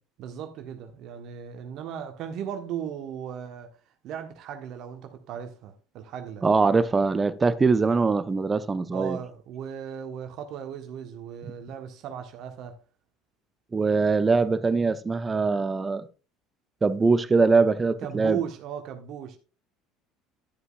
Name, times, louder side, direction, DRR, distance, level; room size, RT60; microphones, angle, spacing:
voice 1, 0.2-3.7 4.0-6.4 8.9-12.8 18.0-19.4, right 9 dB, 50° right, 1.4 m, -36 dB
voice 2, 6.4-9.2 13.7-16.1 16.8-18.4, right 4 dB, 20° right, 0.8 m, -22 dB
11.5 x 11.0 x 2.5 m
figure-of-eight pair, 65°, 0 cm